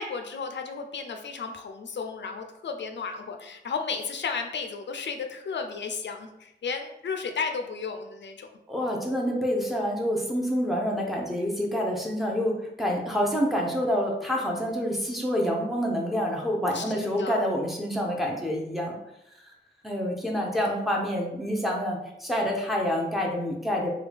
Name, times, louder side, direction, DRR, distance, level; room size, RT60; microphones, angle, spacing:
voice 1, 0.0-8.5 16.7-17.5 20.5-20.6, left 5 dB, 80° left, 5 dB, 0.4 m, -34 dB
voice 2, 8.7-18.9 19.8-23.9, equal, ahead, -2 dB, 0.7 m, -27 dB
3.3 x 2.3 x 3.4 m, 0.82 s
wide cardioid pair, 120°, 18 cm